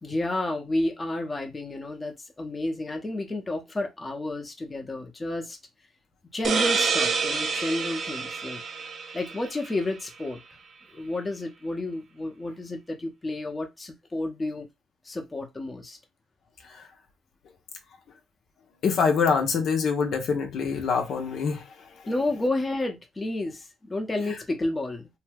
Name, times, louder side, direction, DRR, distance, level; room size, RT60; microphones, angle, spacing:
voice 1, 0.0-5.6 6.3-8.6 9.1-10.4 10.9-14.7 15.0-16.0 22.1-25.1, left 2 dB, 20° left, 0.7 m, -31 dB
sound 1, 6.4-9.9, right 5 dB, 55° right, 0.5 m, -28 dB
voice 2, 18.8-21.6, left 5 dB, 70° left, 0.7 m, -24 dB
2.7 x 2.2 x 3.3 m
cardioid pair, 90°, 0 cm